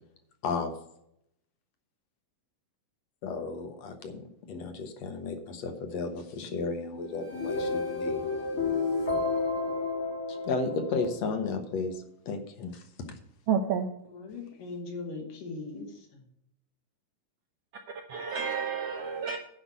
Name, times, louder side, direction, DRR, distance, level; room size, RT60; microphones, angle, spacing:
voice 1, 3.2-8.3 10.3-13.2, left 4 dB, 60° left, 2.1 m, -34 dB
sound 1, 7.1-11.4, left 3 dB, 35° left, 1.7 m, -31 dB
voice 2, 13.5-13.9 17.9-19.4, right 6 dB, 70° right, 1.5 m, -30 dB
voice 3, 14.0-16.3, left 3 dB, 80° left, 3.8 m, -40 dB
10.0 x 5.5 x 8.3 m
omnidirectional pair, 3.8 m